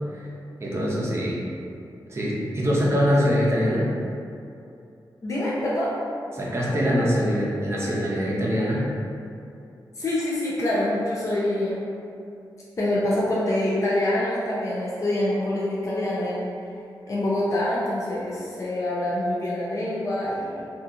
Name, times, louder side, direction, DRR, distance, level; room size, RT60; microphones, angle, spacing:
voice 1, 0.6-1.4 2.1-3.9 6.3-8.9, equal, 35° right, -5 dB, 0.6 m, -23 dB
voice 2, 5.2-5.9 10.0-11.8 12.8-16.5 17.1-20.6, left 1 dB, 40° left, -7 dB, 0.5 m, -25 dB
2.7 x 2.3 x 3.7 m, 2.6 s
wide cardioid pair, 130°, 8 cm